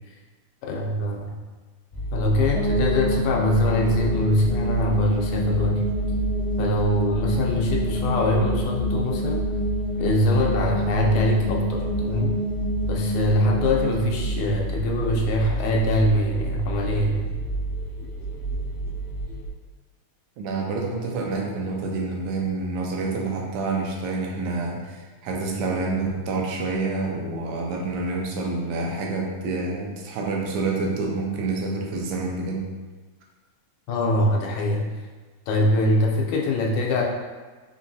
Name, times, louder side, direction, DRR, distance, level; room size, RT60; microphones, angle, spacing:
voice 1, 0.6-1.3 2.1-5.8 6.6-9.4 10.0-12.4 12.9-17.3 33.9-34.9 35.5-37.0, left 1 dB, 85° left, 0 dB, 2.0 m, -23 dB
sound 1, 1.9-19.5, right 1 dB, 65° left, 0.7 m, -29 dB
sound 2, 2.5-15.4, right 1 dB, 40° right, 0.4 m, -28 dB
voice 2, 20.4-32.6, right 3 dB, 80° right, 0 dB, 1.9 m, -28 dB
5.2 x 2.9 x 2.6 m, 1.3 s
omnidirectional pair, 3.3 m